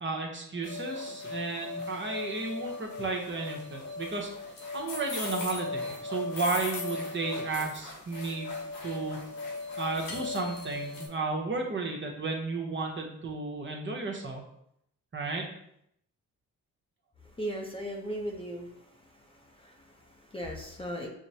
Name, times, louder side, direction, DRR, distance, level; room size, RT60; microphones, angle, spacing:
voice 1, 0.0-4.3 4.7-8.5 8.8-9.2 9.8-14.4 15.1-15.4, right 3 dB, 35° right, 0 dB, 0.8 m, -33 dB
sound 1, 0.6-11.1, left 3 dB, 85° left, 1.0 m, -38 dB
voice 2, 17.4-18.9 19.3-21.1, equal, 15° left, 0 dB, 0.7 m, -38 dB
6.0 x 2.0 x 2.7 m, 0.73 s
cardioid pair, 75°, 33 cm